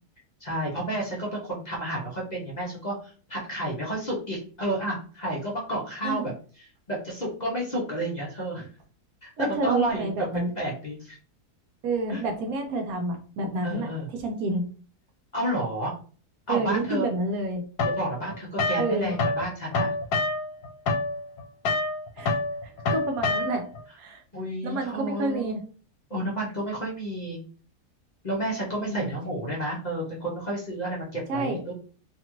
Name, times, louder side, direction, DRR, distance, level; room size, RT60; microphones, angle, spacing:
voice 1, 0.4-6.3 6.6-8.7 9.2-10.1 10.6-11.2 12.1-12.2 13.6-14.1 15.3-15.9 16.5-17.1 17.8-19.9 24.3-25.5 26.1-27.4 28.2-31.7, right 1 dB, 45° left, -4 dB, 0.6 m, -31 dB
voice 2, 9.4-10.5 11.8-13.9 14.2-14.7 16.5-17.6 18.8-19.2 22.2-22.4 22.9-23.7 24.0-24.2 24.6-25.6 28.8-29.1 31.3-31.6, right 2 dB, 70° right, 3 dB, 1.0 m, -29 dB
sound 1, 17.8-19.4 19.7-23.8, left 2 dB, 75° left, 1.1 m, -27 dB
2.8 x 2.4 x 2.9 m, 0.41 s
omnidirectional pair, 1.7 m